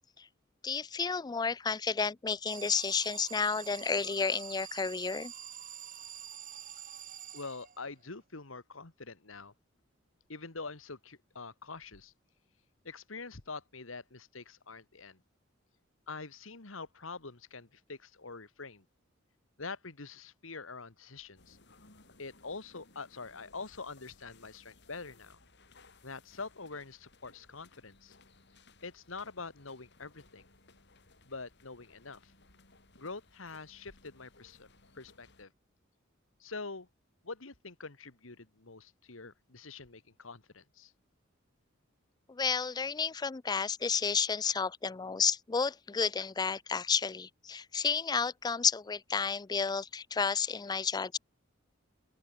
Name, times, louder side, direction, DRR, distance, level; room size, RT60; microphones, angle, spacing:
voice 1, 0.6-5.3 42.3-51.2, left 5 dB, 20° left, 0.4 m, -31 dB
Alarm, 2.5-8.0, right 9 dB, 40° right, 5.6 m, -46 dB
voice 2, 7.3-9.5 10.3-12.1 12.8-15.2 16.1-18.8 19.6-21.6 22.2-25.4 26.0-28.2 28.8-30.5 31.3-32.3 33.0-34.7 34.9-35.5 36.4-36.9 37.2-40.9, left 4 dB, 80° left, 2.0 m, -45 dB
sound 1, 21.4-35.4, left 3 dB, 60° left, 7.1 m, -62 dB
open air
head